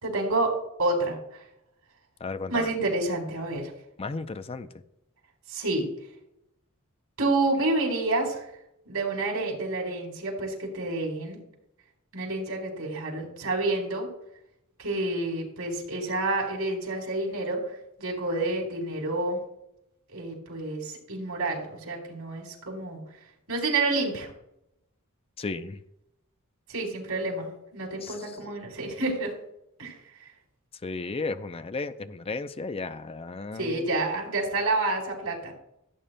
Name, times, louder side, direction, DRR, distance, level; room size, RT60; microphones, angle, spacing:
voice 1, 0.0-1.2 2.5-3.7 5.5-5.9 7.2-8.4 8.9-11.4 12.1-14.1 14.8-19.4 20.1-23.0 23.5-24.3 26.7-29.3 29.8-29.9 33.6-35.5, right 2 dB, 75° right, 0 dB, 3.7 m, -29 dB
voice 2, 2.2-2.7 4.0-4.7 25.4-25.8 28.0-28.1 30.8-33.9, left 3 dB, 25° left, 11 dB, 0.5 m, -34 dB
16.5 x 8.8 x 2.2 m, 0.82 s
head